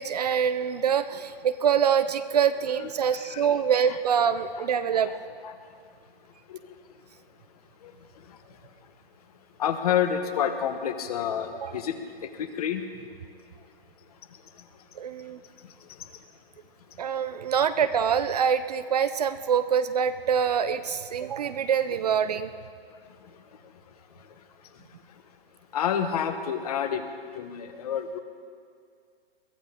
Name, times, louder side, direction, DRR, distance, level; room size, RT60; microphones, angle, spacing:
voice 1, 0.0-5.1 11.5-11.7 15.0-15.4 17.0-22.5, right 7 dB, 40° right, 12 dB, 0.5 m, -25 dB
voice 2, 9.6-12.0 12.4-12.8 25.7-28.2, left 8 dB, 40° left, 8 dB, 1.1 m, -28 dB
22.0 x 15.0 x 3.7 m, 2.2 s
hypercardioid pair, 165°, 30 cm